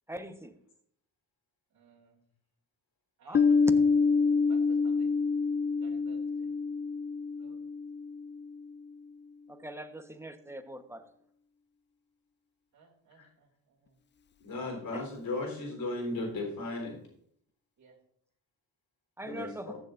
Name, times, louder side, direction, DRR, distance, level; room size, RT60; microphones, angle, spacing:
voice 1, 0.1-0.6 3.3-3.4 9.5-11.0 14.9-15.1 19.2-19.8, right 1 dB, 5° right, 7 dB, 1.1 m, -42 dB
voice 2, 1.7-2.3 3.2-3.6 4.5-5.1 5.7-6.6 7.4-7.6 12.7-14.0 17.8-18.0, right 4 dB, 50° right, -3 dB, 2.7 m, -59 dB
Piano, 3.3-8.7, left 4 dB, 30° left, 0.5 m, -27 dB
voice 3, 14.4-17.0 19.2-19.8, left 2 dB, 65° left, 1 dB, 3.9 m, -36 dB
14.5 x 7.2 x 2.6 m, 0.66 s
supercardioid pair, 65°, 38 cm